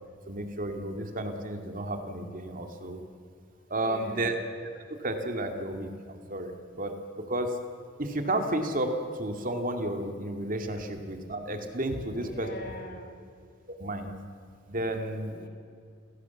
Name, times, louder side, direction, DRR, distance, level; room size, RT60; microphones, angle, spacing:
voice 1, 0.3-3.0 3.7-4.7 5.0-7.5 8.0-8.9 9.2-12.5 13.8-14.2 14.7-15.4, right 1 dB, 40° right, 5 dB, 2.3 m, -32 dB
voice 2, 3.7-4.4 10.7-10.8 11.9-13.2 15.3-15.5, left 1 dB, 50° left, 6 dB, 3.3 m, -42 dB
28.5 x 18.0 x 7.2 m, 2.3 s
head